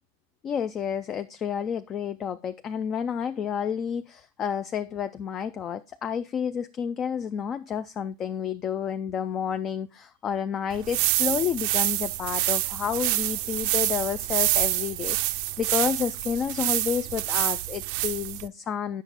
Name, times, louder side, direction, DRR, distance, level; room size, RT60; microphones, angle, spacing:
voice 1, 0.4-19.0, left 8 dB, 25° left, 0.3 m, -30 dB
sound 1, 10.7-18.5, right 16 dB, 45° right, 0.4 m, -27 dB
8.8 x 6.4 x 3.8 m
figure-of-eight pair, 90°, 0 cm